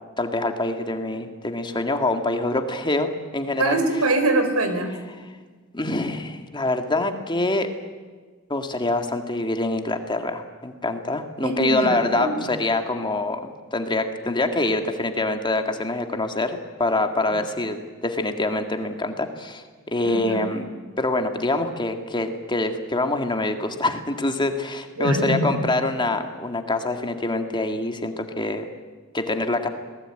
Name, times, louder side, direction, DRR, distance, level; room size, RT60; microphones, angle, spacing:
voice 1, 0.2-3.8 5.7-7.7 8.5-20.7 21.0-28.7 29.1-29.7, left 2 dB, 20° left, 6 dB, 1.9 m, -25 dB
voice 2, 3.6-5.0 11.4-12.6 17.3-17.4 20.0-20.6 25.0-25.7, right 2 dB, 85° right, 8 dB, 4.1 m, -24 dB
26.0 x 19.5 x 8.9 m, 1.4 s
head